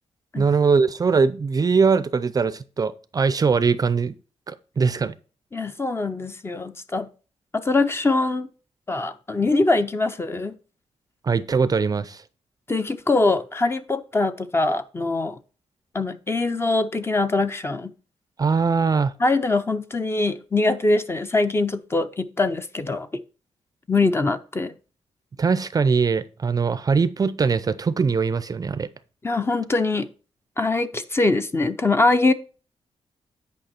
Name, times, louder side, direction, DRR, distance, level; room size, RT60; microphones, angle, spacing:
voice 1, 0.4-4.1 4.5-5.1 11.2-12.2 18.4-19.1 25.4-28.9, right 5 dB, 30° right, 0.5 m, -21 dB
voice 2, 5.5-7.1 7.5-8.5 8.9-10.5 12.7-15.4 15.9-17.9 19.2-23.2 23.9-24.7 29.2-30.1 30.6-32.3, left 3 dB, 20° left, 0.6 m, -23 dB
9.2 x 5.4 x 4.2 m
wide cardioid pair, 130°, 12 cm